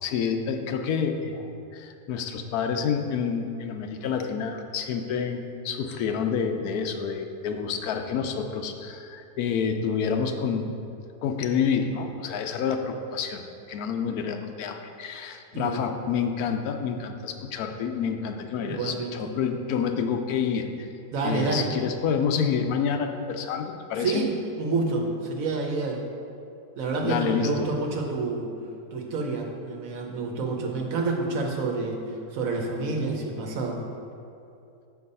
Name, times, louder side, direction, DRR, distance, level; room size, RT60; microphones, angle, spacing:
voice 1, 0.0-10.7 11.2-13.4 13.7-20.7 21.2-24.2 27.0-27.7, left 6 dB, 75° left, 6 dB, 1.0 m, -28 dB
voice 2, 15.5-15.9 18.6-19.3 21.1-21.7 24.0-26.0 26.8-28.5 28.9-32.0 32.3-33.8, right 3 dB, 65° right, 1 dB, 1.2 m, -28 dB
6.9 x 4.6 x 5.4 m, 2.6 s
omnidirectional pair, 1.7 m